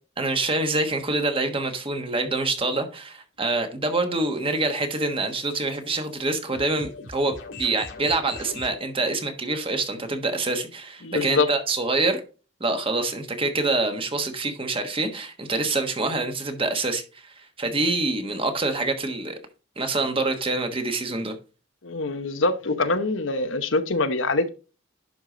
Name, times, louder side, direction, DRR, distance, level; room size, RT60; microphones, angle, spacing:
voice 1, 0.2-7.3 7.6-12.2 12.6-19.4 19.8-21.3, right 2 dB, 30° right, 1.3 m, -26 dB
sound 1, 3.4-8.8, left 3 dB, 75° left, 1.8 m, -43 dB
voice 2, 11.0-11.5 21.8-24.5, left 3 dB, 90° left, 1.0 m, -24 dB
11.0 x 4.8 x 3.8 m
head